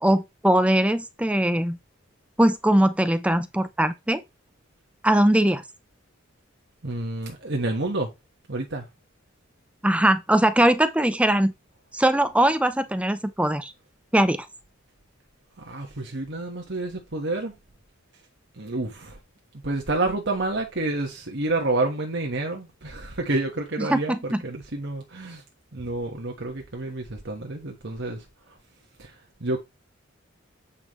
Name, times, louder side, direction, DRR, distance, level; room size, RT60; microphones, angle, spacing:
voice 1, 0.0-1.8 2.4-4.2 5.0-5.6 9.8-11.5 11.9-13.7 14.1-14.5 23.9-24.4, right 1 dB, 5° right, 0.6 m, -21 dB
voice 2, 6.8-8.1 8.5-8.8 15.6-17.5 18.6-19.2 19.6-25.4 25.7-28.2 29.0-29.1 29.4-29.6, right 2 dB, 60° right, 1.4 m, -29 dB
8.5 x 5.5 x 3.1 m
head